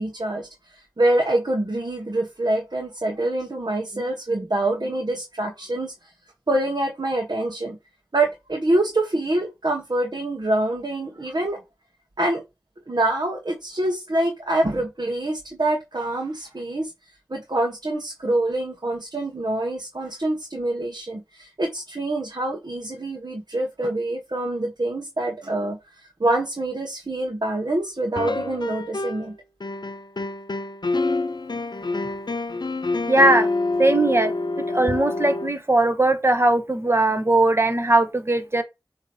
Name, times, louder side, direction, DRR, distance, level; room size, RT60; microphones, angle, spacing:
voice 1, 0.0-5.9 6.5-7.8 8.1-11.6 12.2-12.4 12.9-16.9 17.3-25.8 26.2-29.3, right 1 dB, 70° right, 1.2 m, -25 dB
sound 1, 28.2-29.3 29.6-35.5, left 2 dB, 80° left, 0.6 m, -27 dB
voice 2, 33.1-33.5 33.8-38.6, right 2 dB, 35° right, 1.1 m, -19 dB
7.4 x 3.0 x 4.2 m
wide cardioid pair, 45°, 7 cm